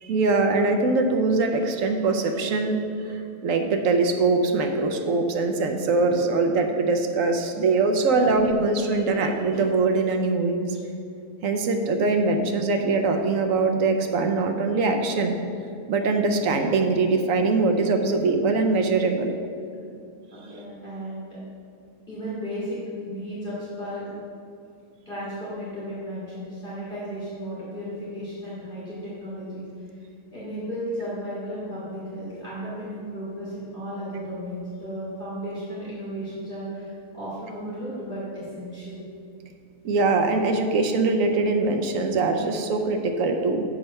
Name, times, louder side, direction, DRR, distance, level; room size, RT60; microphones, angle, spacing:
voice 1, 0.0-10.7 11.4-15.3 15.9-19.3 39.8-43.6, right 3 dB, 65° right, 5 dB, 0.9 m, -22 dB
voice 2, 20.3-21.4 22.1-24.1 25.1-29.7 30.3-39.0, equal, 35° left, -10 dB, 2.2 m, -34 dB
6.8 x 5.0 x 5.4 m, 2.4 s
omnidirectional pair, 1.7 m